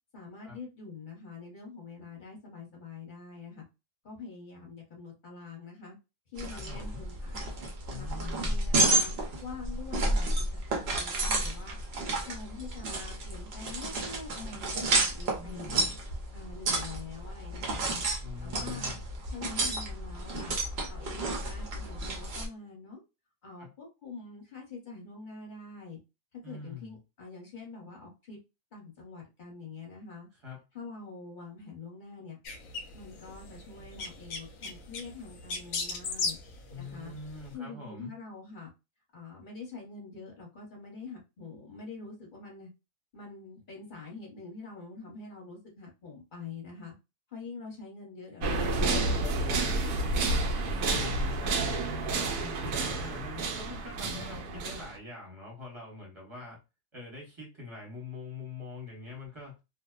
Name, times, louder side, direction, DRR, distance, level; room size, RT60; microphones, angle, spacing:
voice 1, 0.1-3.6 4.0-6.0 6.3-11.8 12.2-15.7 16.3-18.1 18.4-18.9 19.3-20.6 20.9-23.0 23.4-26.0 26.3-28.4 28.7-30.3 30.7-32.4 32.9-36.4 36.7-37.1 37.5-38.7 39.1-42.7 43.1-46.9 47.3-50.7, left 4 dB, 40° left, -1 dB, 0.9 m, -45 dB
sound 1, 6.4-22.5, right 2 dB, 55° right, 0.7 m, -31 dB
voice 2, 6.5-7.0 7.9-8.6 15.3-15.9 18.2-19.1 23.6-23.7 26.4-27.0 30.4-30.6 36.7-38.1 50.9-56.6 56.9-59.6, left 3 dB, 25° right, -3 dB, 0.7 m, -44 dB
sound 2, 32.5-37.5, left 4 dB, 70° left, 0.9 m, -38 dB
sound 3, 48.4-55.0, right 2 dB, 90° right, 1.1 m, -30 dB
2.7 x 2.0 x 2.3 m, 0.26 s
omnidirectional pair, 1.6 m